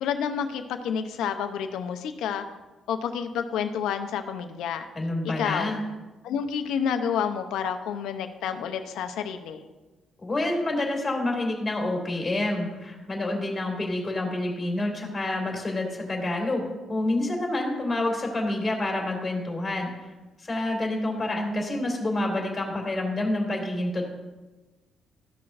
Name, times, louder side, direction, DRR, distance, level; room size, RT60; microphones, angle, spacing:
voice 1, 0.0-2.4 2.9-4.9 5.2-5.7 6.2-9.6, left 7 dB, 85° left, 7 dB, 0.7 m, -29 dB
voice 2, 4.9-5.8 10.2-20.1 20.4-24.0, left 2 dB, 20° left, 0 dB, 2.5 m, -28 dB
14.0 x 5.9 x 2.6 m, 1.2 s
cardioid pair, 90°, 0 cm